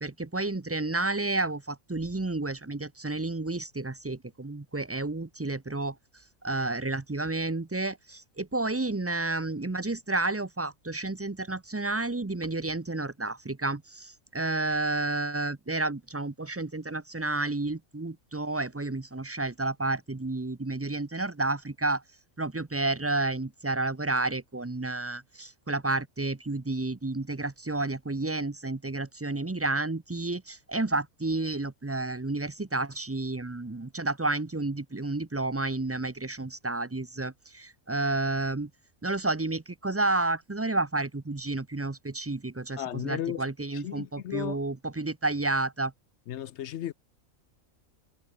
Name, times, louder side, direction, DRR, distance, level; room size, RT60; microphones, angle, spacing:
voice 1, 0.0-6.0 6.4-22.0 22.4-38.7 39.0-45.9, right 2 dB, 20° right, 0.4 m, -31 dB
voice 2, 42.8-43.4 43.7-44.6 46.3-46.9, left 11 dB, 65° left, 0.8 m, -34 dB
omnidirectional pair, 1.5 m